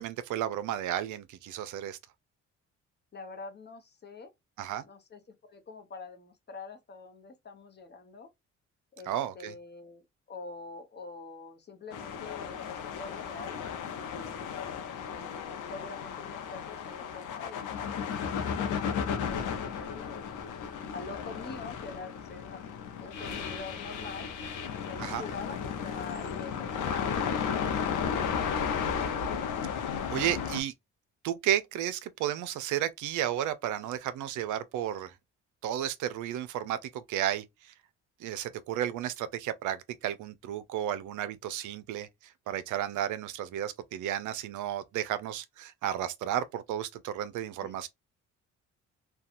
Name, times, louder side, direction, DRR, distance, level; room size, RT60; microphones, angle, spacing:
voice 1, 0.0-2.0 4.6-4.8 9.1-9.5 25.0-25.2 30.1-30.7 31.2-35.1 35.6-37.4 38.2-47.9, right 11 dB, 80° right, 0.5 m, -33 dB
voice 2, 3.1-4.3 4.8-8.3 9.0-14.4 15.1-19.2 19.7-20.5 20.9-22.6 23.0-24.3 24.9-27.2 47.6-47.7, left 4 dB, 35° left, 0.8 m, -45 dB
sound 1, 11.9-30.6, left 7 dB, 80° left, 0.7 m, -34 dB
2.8 x 2.2 x 2.4 m
cardioid pair, 90°, 30 cm